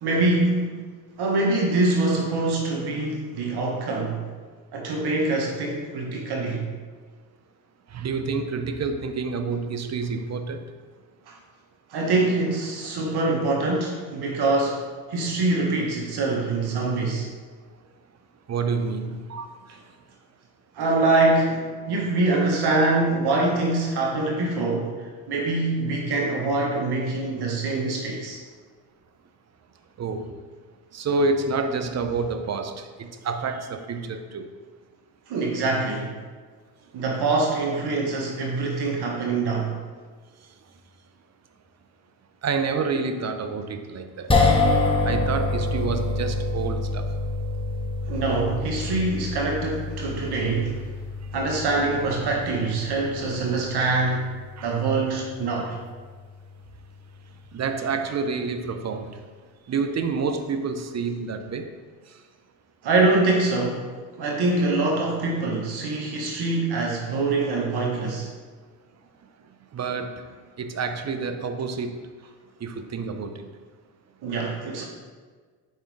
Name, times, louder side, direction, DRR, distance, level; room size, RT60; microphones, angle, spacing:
voice 1, 0.0-0.9 1.2-4.3 4.7-6.7 11.3-11.4 11.9-14.8 15.1-17.3 20.7-28.4 35.3-36.1 36.9-39.8 48.1-50.9 51.3-54.2 54.6-55.8 62.8-63.9 64.2-68.3 74.2-74.8, right 2 dB, 60° right, -1 dB, 1.3 m, -24 dB
voice 2, 7.9-10.6 13.0-13.1 18.5-19.7 30.0-30.4 30.9-34.5 42.4-44.3 45.0-47.1 54.6-54.8 57.5-59.2 59.7-61.8 69.7-72.1 72.6-73.5, right 4 dB, 40° right, 8 dB, 0.7 m, -28 dB
sound 1, 44.3-56.6, left 2 dB, 10° left, 1.0 m, -27 dB
5.1 x 4.2 x 4.7 m, 1.5 s
supercardioid pair, 60°, 43 cm